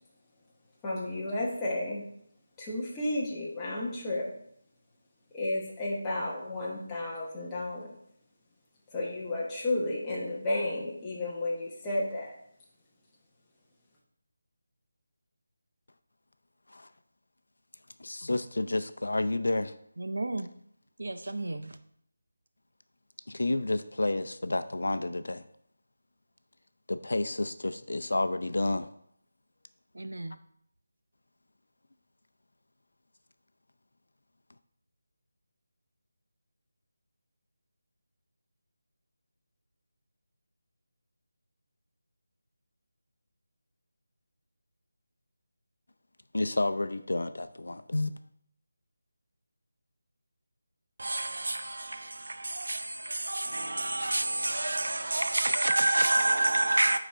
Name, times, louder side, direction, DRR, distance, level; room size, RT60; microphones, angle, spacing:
voice 1, 0.8-2.0 2.6-4.3 5.3-8.0 8.9-12.4, left 1 dB, 10° left, 1.0 m, -32 dB
voice 2, 18.0-19.7 23.3-25.4 26.9-28.9 46.3-48.1, left 2 dB, 85° left, 0.5 m, -30 dB
voice 3, 20.0-20.5 21.0-21.8 29.9-30.4 51.0-57.0, right 2 dB, 80° right, 0.6 m, -29 dB
9.7 x 4.2 x 3.4 m
figure-of-eight pair, 175°, 0 cm